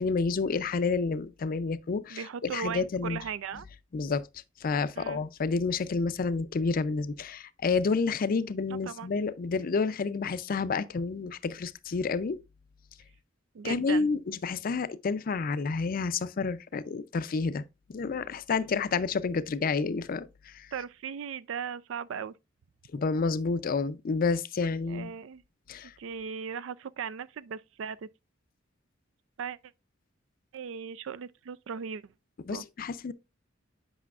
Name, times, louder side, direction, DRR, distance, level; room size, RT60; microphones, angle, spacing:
voice 1, 0.0-3.2 3.9-4.3 4.6-12.4 13.6-17.6 17.9-20.7 22.9-25.1 25.7-25.9 32.5-33.1, left 4 dB, 45° left, 0.4 m, -29 dB
voice 2, 2.1-3.7 5.0-5.2 8.7-9.1 13.5-14.1 20.7-22.4 24.9-25.4 26.0-28.1 29.4-29.6 30.5-32.0 32.5-32.6, right 7 dB, 75° right, 0.4 m, -37 dB
8.3 x 5.5 x 2.4 m
head